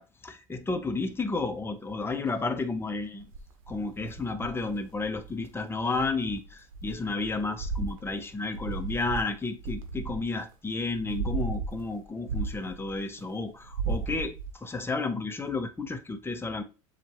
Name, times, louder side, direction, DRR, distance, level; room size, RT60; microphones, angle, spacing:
voice 1, 0.0-3.3 3.7-16.6, left 3 dB, 15° left, 0.9 m, -32 dB
sound 1, 3.2-5.5 5.9-10.5 10.9-13.2 13.6-14.5, right 4 dB, 70° right, 0.8 m, -35 dB
7.0 x 2.5 x 3.0 m
hypercardioid pair, 90°, 18 cm